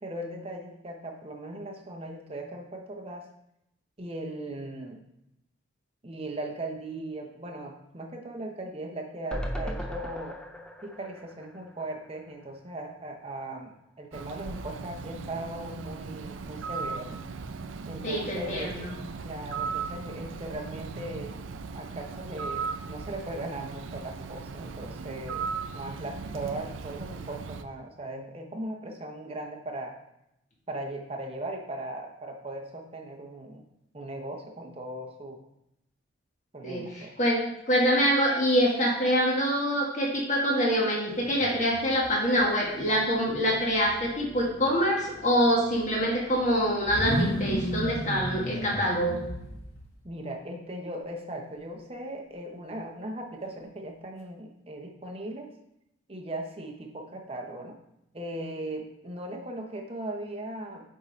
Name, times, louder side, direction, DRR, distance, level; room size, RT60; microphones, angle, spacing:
voice 1, 0.0-3.3 4.0-5.0 6.0-10.4 10.8-17.2 17.9-18.9 19.2-21.3 21.7-30.0 30.7-33.6 33.9-35.4 36.5-37.1 50.0-55.5 56.1-57.8 58.1-60.9, right 1 dB, 30° right, 2 dB, 0.8 m, -38 dB
sound 1, 9.3-12.5 12.9-13.0 13.2-13.3, equal, 5° left, 0.4 m, -37 dB
Bird, 14.1-27.6, right 5 dB, 70° right, 0.4 m, -37 dB
voice 2, 18.0-18.9 36.6-37.4 37.7-49.2, equal, 35° left, -2 dB, 1.6 m, -25 dB
sound 2, 41.1-42.6 42.8-49.9, equal, 85° left, 1.7 m, -35 dB
8.5 x 3.7 x 4.0 m, 0.82 s
head